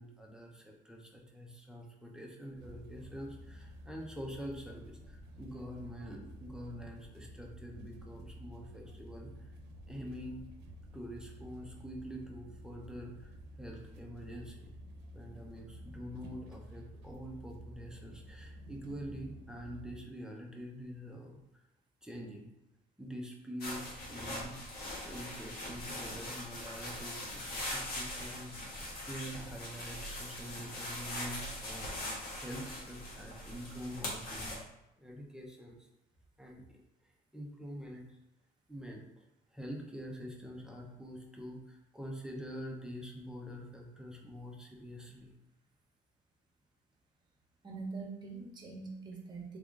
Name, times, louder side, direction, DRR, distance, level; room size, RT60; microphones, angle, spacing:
voice 1, 0.0-9.5 9.9-10.4 10.9-14.7 15.1-21.6 22.0-22.5 23.0-24.6 25.0-34.6 35.0-35.8 36.4-36.8 37.3-38.2 38.7-39.2 39.5-45.3, equal, 5° right, -1 dB, 0.7 m, -46 dB
sound 1, 2.6-20.0, equal, 90° right, 0.6 m, -51 dB
sound 2, 23.6-34.6, left 1 dB, 65° left, 1.4 m, -41 dB
voice 2, 47.6-49.6, right 4 dB, 25° right, -1 dB, 1.3 m, -43 dB
3.5 x 3.4 x 3.7 m, 0.88 s
cardioid pair, 110°, 17 cm